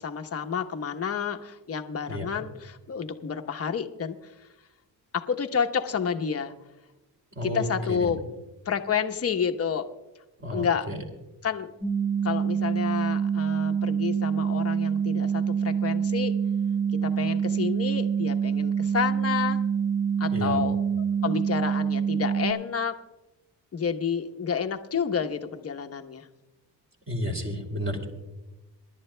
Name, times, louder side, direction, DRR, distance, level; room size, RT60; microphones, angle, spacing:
voice 1, 0.0-4.3 5.1-6.5 7.4-8.2 8.6-9.8 10.4-10.9 11.4-11.7 12.2-16.3 17.0-19.6 20.2-23.0 23.7-26.3, left 7 dB, 35° left, 6 dB, 1.0 m, -30 dB
voice 2, 7.4-8.0 10.4-11.0 20.3-20.6 27.1-28.1, equal, 30° right, 1 dB, 2.7 m, -31 dB
sound 1, 11.8-22.5, right 7 dB, 55° right, 2.9 m, -26 dB
27.5 x 11.0 x 2.2 m, 1.1 s
cardioid pair, 80°, 41 cm